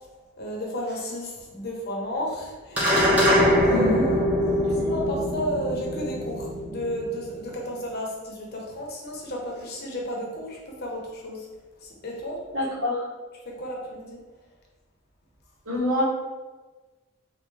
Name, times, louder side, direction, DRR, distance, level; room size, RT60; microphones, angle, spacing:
voice 1, 0.4-4.0 4.3-4.4 4.7-11.5 11.8-12.5 13.4-14.2, equal, 50° left, -2 dB, 0.9 m, -33 dB
sound 1, 2.8-7.4, equal, 5° right, 0.8 m, -23 dB
voice 2, 3.7-4.0 12.5-13.0 15.6-16.0, left 2 dB, 80° right, -6 dB, 1.4 m, -25 dB
4.2 x 2.6 x 3.3 m, 1.3 s
head